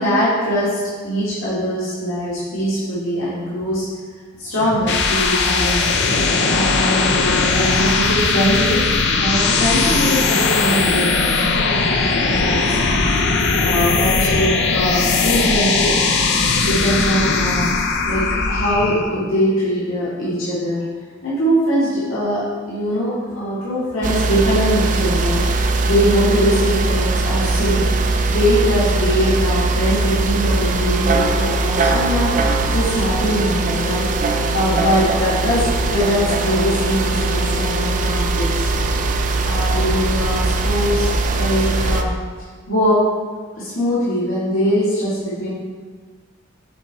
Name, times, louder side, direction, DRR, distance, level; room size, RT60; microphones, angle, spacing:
voice 1, 0.0-3.9 4.4-6.1 6.5-8.8 9.1-11.4 12.4-12.8 13.6-16.0 16.6-20.8 21.2-38.7 39.4-42.1 42.7-43.0 43.6-45.5, equal, 90° left, -10 dB, 2.1 m, -21 dB
sound 1, 4.6-19.1, left 4 dB, 60° left, 0.6 m, -18 dB
sound 2, 24.0-42.0, right 3 dB, 40° right, 0.4 m, -20 dB
6.9 x 4.5 x 4.1 m, 1.5 s
head